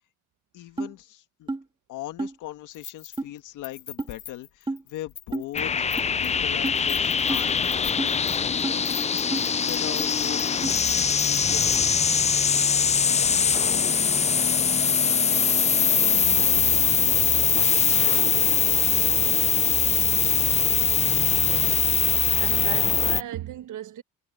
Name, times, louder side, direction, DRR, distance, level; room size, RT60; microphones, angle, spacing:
voice 1, 0.5-1.5 1.9-5.9 6.2-9.0 9.4-11.7, left 14 dB, 85° left, 1.9 m, -40 dB
sound 1, 0.8-0.9 1.5-1.6 2.2-2.3 3.2-3.3 4.0-4.1 4.7-4.8 5.3-5.5 6.0-6.1 6.6-6.8 7.3-7.4 8.0-8.1 8.6-8.8 9.3-9.5 10.0-10.1 10.6-10.7, right 2 dB, 15° right, 2.3 m, -30 dB
Keys jangling, 2.7-3.4 3.6-5.6 5.9-6.3 6.6-11.8 12.1-12.2, left 12 dB, 70° left, 4.7 m, -41 dB
sound 2, 5.5-23.2, left 6 dB, 25° left, 0.4 m, -22 dB
voice 2, 21.4-21.8 22.4-24.0, right 12 dB, 80° right, 1.4 m, -36 dB
cardioid pair, 90°, 30 cm